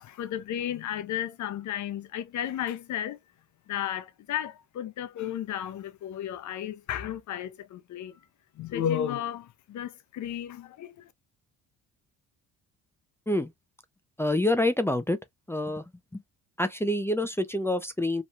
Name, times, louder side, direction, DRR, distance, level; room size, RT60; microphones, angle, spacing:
voice 1, 0.0-3.2 3.7-8.2 8.5-11.1, left 10 dB, 55° left, 0.6 m, -33 dB
voice 2, 14.2-15.2 15.5-15.8 16.1-16.2 16.6-18.2, left 1 dB, 5° left, 0.4 m, -27 dB
3.0 x 2.2 x 2.6 m
supercardioid pair, 80°, 34 cm